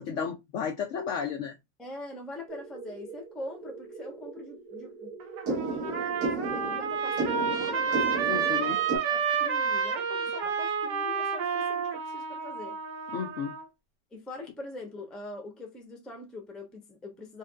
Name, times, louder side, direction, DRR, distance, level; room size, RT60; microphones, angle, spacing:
voice 1, 0.0-1.5 8.3-8.8 13.1-13.5, left 7 dB, 90° left, 0.6 m, -33 dB
voice 2, 1.8-5.2 5.5-12.8 14.1-17.4, left 2 dB, ahead, 0.3 m, -43 dB
sound 1, 2.5-9.0, right 3 dB, 55° right, 1.6 m, -35 dB
Trumpet, 5.2-13.6, right 6 dB, 85° right, 1.5 m, -30 dB
4.3 x 2.7 x 2.3 m
omnidirectional pair, 1.9 m